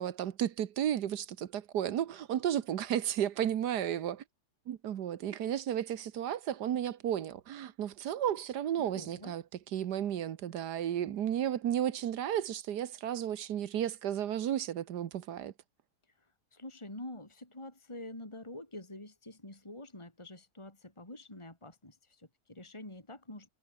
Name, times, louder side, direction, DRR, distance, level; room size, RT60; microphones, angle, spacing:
voice 1, 0.0-4.2 4.7-9.4 9.7-15.5, right 10 dB, 80° right, 1.6 m, -33 dB
voice 2, 8.8-9.3 16.5-23.5, left 1 dB, 15° left, 3.5 m, -47 dB
omnidirectional pair, 1.7 m